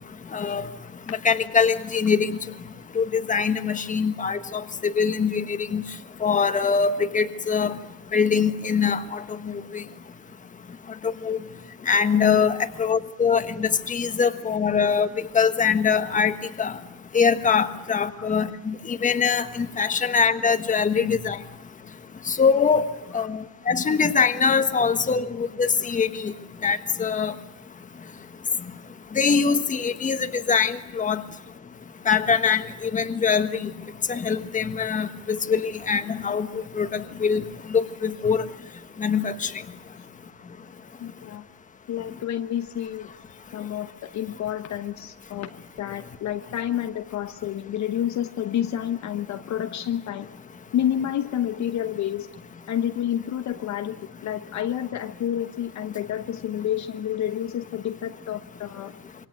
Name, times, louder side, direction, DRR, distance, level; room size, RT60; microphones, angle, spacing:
voice 1, 0.3-0.7 1.2-2.4 2.9-5.8 6.2-7.7 8.1-9.8 11.2-11.4 11.9-15.1 15.3-16.7 17.1-21.4 22.3-22.8 23.1-23.4 23.7-26.3 26.6-27.3 29.1-31.2 32.0-33.7 34.1-36.5 36.7-37.4 37.7-38.4 39.0-39.5, left 6 dB, 20° left, 9 dB, 1.4 m, -23 dB
voice 2, 41.0-41.5 41.9-43.1 43.5-45.5 45.8-50.3 50.7-52.3 52.7-54.0 54.2-59.0, left 10 dB, 40° left, 8 dB, 1.1 m, -29 dB
27.0 x 25.0 x 8.0 m, 0.95 s
cardioid pair, 175°, 42 cm